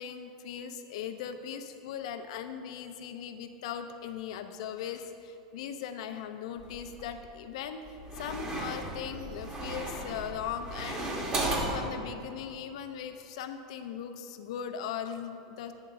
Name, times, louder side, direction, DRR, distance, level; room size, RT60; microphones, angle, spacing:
voice 1, 0.0-15.7, left 8 dB, 70° left, 8 dB, 0.6 m, -39 dB
sound 1, 6.6-7.2 7.9-11.8, right 1 dB, 25° right, 1.3 m, -35 dB
8.9 x 3.7 x 6.7 m, 2.6 s
supercardioid pair, 125°, 3 cm